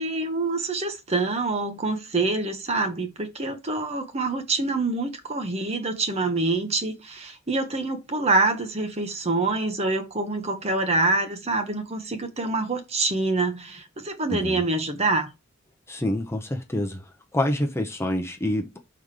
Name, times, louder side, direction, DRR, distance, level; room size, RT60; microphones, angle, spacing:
voice 1, 0.0-15.3, right 3 dB, 30° right, 1.1 m, -26 dB
voice 2, 14.3-14.6 15.9-17.1 17.3-18.8, left 1 dB, 15° left, 0.8 m, -27 dB
5.4 x 3.9 x 4.9 m
head